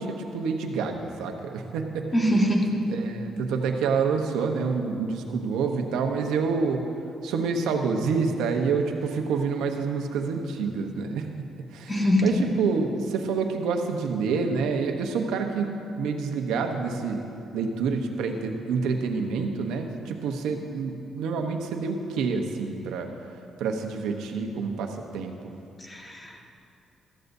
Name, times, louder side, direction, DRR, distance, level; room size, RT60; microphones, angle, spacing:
voice 1, 0.0-2.1 2.9-6.9 7.2-11.5 11.7-17.2 17.5-23.1 23.6-25.5, right 5 dB, 90° right, 4 dB, 0.9 m, -28 dB
voice 2, 2.1-2.6 11.9-12.2 25.9-26.6, equal, 20° left, 1 dB, 1.5 m, -23 dB
15.0 x 13.0 x 2.7 m, 2.6 s
cardioid pair, 90°, 0 cm